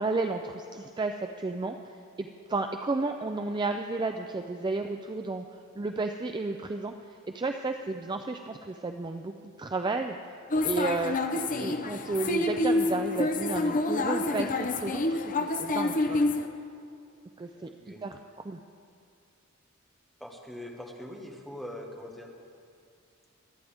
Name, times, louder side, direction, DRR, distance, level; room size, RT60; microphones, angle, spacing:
voice 1, 0.0-5.4 5.8-9.3 9.6-10.2 10.6-15.1 15.4-16.2 17.4-18.2 18.4-18.6, right 3 dB, 20° right, 5 dB, 0.4 m, -32 dB
sound 1, 10.5-16.5, left 2 dB, 40° left, 0.7 m, -28 dB
voice 2, 11.3-11.9 17.5-18.0 20.2-22.3, left 1 dB, ahead, -1 dB, 1.5 m, -43 dB
24.5 x 9.4 x 3.5 m, 2.4 s
head